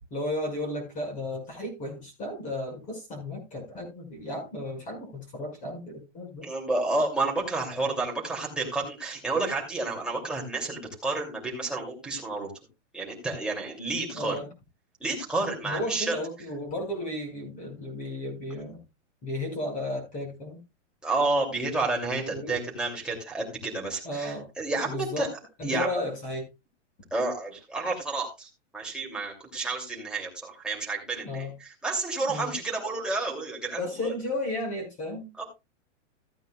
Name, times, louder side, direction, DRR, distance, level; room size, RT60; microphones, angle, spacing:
voice 1, 0.1-6.5 14.1-14.5 15.6-18.8 19.2-20.6 22.3-22.6 24.0-24.5 24.8-25.3 25.6-26.5 31.2-31.5 32.3-32.5 33.8-35.3, left 1 dB, 20° left, 2 dB, 5.8 m, -34 dB
voice 2, 6.4-12.5 12.9-14.4 15.0-16.2 21.0-25.3 25.6-25.9 27.1-34.1 35.4-35.5, right 3 dB, ahead, -2 dB, 2.9 m, -30 dB
16.0 x 9.1 x 2.4 m, 0.25 s
hypercardioid pair, 165°, 37 cm